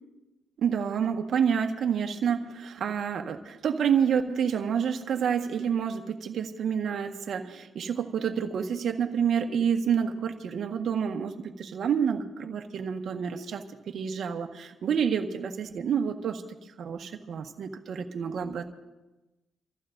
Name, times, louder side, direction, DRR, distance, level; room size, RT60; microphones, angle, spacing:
voice 1, 0.6-16.4 16.8-18.7, right 7 dB, 65° right, 5 dB, 1.4 m, -28 dB
28.0 x 15.0 x 2.6 m, 1.1 s
cardioid pair, 90°, 0 cm